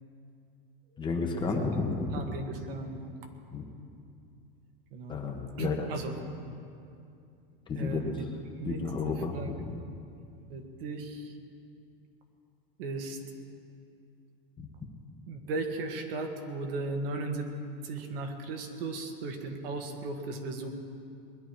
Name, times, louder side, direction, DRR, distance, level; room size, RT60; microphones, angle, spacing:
voice 1, 1.0-2.1 3.5-3.6 5.1-5.9 7.7-8.0 8.7-9.3, left 4 dB, 15° left, 2 dB, 1.1 m, -31 dB
voice 2, 2.1-3.1 4.9-5.2 5.6-6.2 7.7-8.3 8.6-9.5 10.5-11.4 12.8-13.2 15.3-17.5 17.8-20.7, right 3 dB, 75° right, 4 dB, 2.0 m, -36 dB
20.5 x 11.0 x 4.7 m, 2.5 s
supercardioid pair, 165°, 30 cm